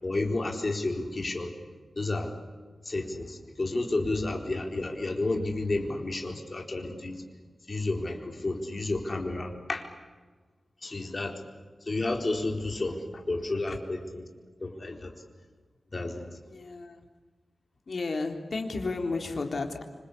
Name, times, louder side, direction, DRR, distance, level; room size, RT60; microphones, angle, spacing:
voice 1, 0.0-1.5 2.0-2.3 2.8-7.2 7.7-9.9 10.8-11.4 11.9-14.3 14.6-15.1 15.9-16.3, left 2 dB, 35° left, 3 dB, 4.3 m, -31 dB
voice 2, 16.4-17.1 17.9-19.8, left 3 dB, 60° left, 4 dB, 3.7 m, -33 dB
27.0 x 25.5 x 8.5 m, 1.4 s
wide cardioid pair, 125°, 0 cm